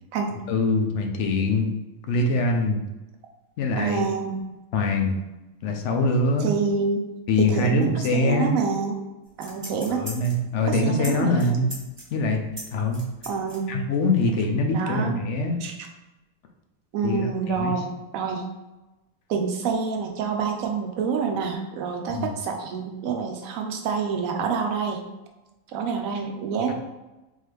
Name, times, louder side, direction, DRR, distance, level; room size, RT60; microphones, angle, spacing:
voice 1, 0.5-1.7 2.1-2.8 3.6-4.0 4.7-5.2 5.6-6.5 7.3-8.5 9.9-11.7 12.1-12.4 12.7-13.0 13.7-15.6 17.0-17.7 22.1-22.3 26.7-26.8, left 2 dB, 65° left, 4 dB, 0.8 m, -23 dB
voice 2, 3.8-4.3 6.4-7.1 7.4-9.0 9.4-10.0 10.7-11.6 13.3-13.7 14.7-15.1 15.6-15.7 16.9-18.4 19.3-25.0 25.7-26.7, right 5 dB, 80° right, 3 dB, 1.0 m, -27 dB
sound 1, 9.3-10.5 11.0-11.1 11.4-13.6 13.9-14.0, equal, 25° right, 1.4 m, -38 dB
3.7 x 3.1 x 3.2 m, 1.0 s
omnidirectional pair, 1.5 m